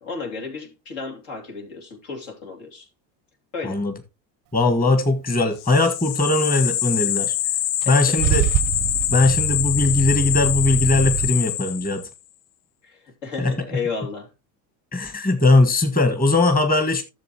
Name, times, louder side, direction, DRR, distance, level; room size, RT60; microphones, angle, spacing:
voice 1, 0.0-2.9 3.5-3.8 7.9-8.4 12.8-14.3, left 4 dB, 70° left, 2.8 m, -33 dB
voice 2, 4.5-7.3 7.9-8.4 9.1-12.0 13.4-13.5 14.9-17.0, left 2 dB, 15° left, 1.5 m, -19 dB
sound 1, 5.6-12.1, left 12 dB, 55° left, 0.6 m, -25 dB
Car / Engine starting / Idling, 7.8-11.3, right 15 dB, 45° right, 0.5 m, -25 dB
12.0 x 7.2 x 2.9 m
hypercardioid pair, 85°, 50 cm